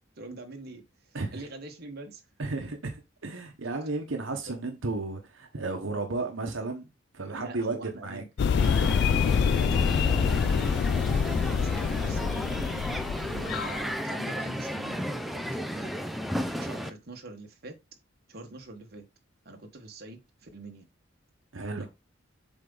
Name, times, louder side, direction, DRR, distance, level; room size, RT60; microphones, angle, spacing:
voice 1, 0.2-2.2 4.5-4.6 7.3-8.3 8.6-12.6 13.2-15.3 15.5-15.9 16.6-17.7 18.3-19.0 19.4-20.9 21.8-21.9, right 2 dB, 55° right, 1.3 m, -44 dB
voice 2, 2.4-6.9 7.1-8.2 21.5-21.9, right 3 dB, 75° right, 1.1 m, -33 dB
sound 1, 8.4-13.8, left 6 dB, 60° left, 0.3 m, -26 dB
Crowd, 8.6-16.9, equal, ahead, 0.5 m, -34 dB
7.4 x 4.0 x 3.9 m
head